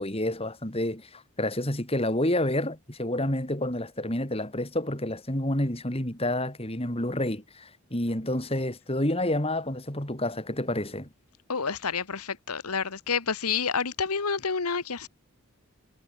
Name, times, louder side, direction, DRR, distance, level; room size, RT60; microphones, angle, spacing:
voice 1, 0.0-11.1, left 1 dB, 25° left, 3.4 m, -29 dB
voice 2, 11.5-15.1, left 5 dB, 90° left, 1.5 m, -29 dB
head